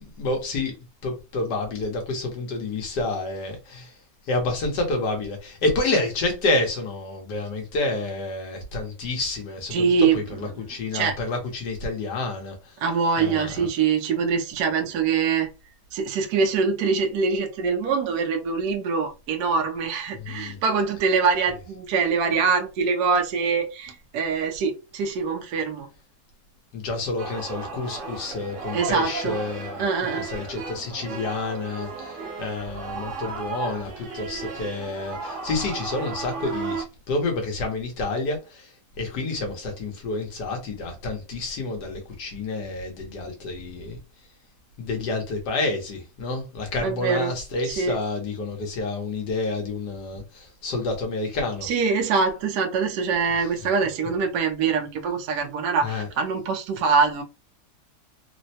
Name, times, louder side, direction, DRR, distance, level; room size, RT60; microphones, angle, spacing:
voice 1, 0.2-0.7 1.0-3.9 4.3-12.5 13.2-13.7 20.2-20.6 26.7-29.8 30.2-32.1 32.4-38.4 39.0-44.0 44.8-51.7 55.8-56.1, left 2 dB, 80° left, 1.6 m, -29 dB
voice 2, 9.7-10.7 10.9-11.2 12.8-15.5 15.9-25.9 28.7-29.4 29.8-30.3 46.8-47.3 47.6-48.0 51.6-57.2, right 5 dB, 75° right, 1.1 m, -24 dB
sound 1, 27.2-36.8, right 4 dB, 55° right, 1.1 m, -35 dB
3.8 x 2.1 x 2.7 m
omnidirectional pair, 1.8 m